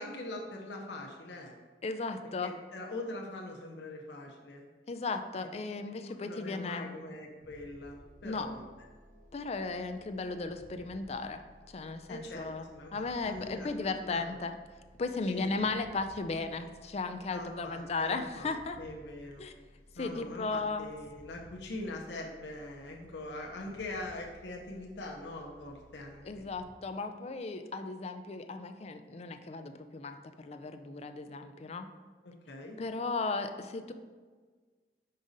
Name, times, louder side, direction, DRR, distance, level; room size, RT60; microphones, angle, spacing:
voice 1, 0.0-1.5 2.4-4.7 5.4-5.5 6.3-8.6 12.1-12.9 13.2-13.7 14.0-14.4 15.3-15.7 17.3-19.5 20.0-26.5 32.2-32.8, left 2 dB, 90° left, 0 dB, 0.8 m, -43 dB
voice 2, 1.8-2.5 4.9-7.0 8.2-8.5 9.3-11.4 11.7-12.7 12.9-14.6 15.0-18.8 19.4-19.5 20.0-20.9 26.2-31.9 32.8-33.9, left 3 dB, 35° left, 8 dB, 0.4 m, -36 dB
sound 1, 7.4-26.6, equal, 50° right, 1.3 m, -58 dB
5.4 x 5.0 x 4.0 m, 1.5 s
head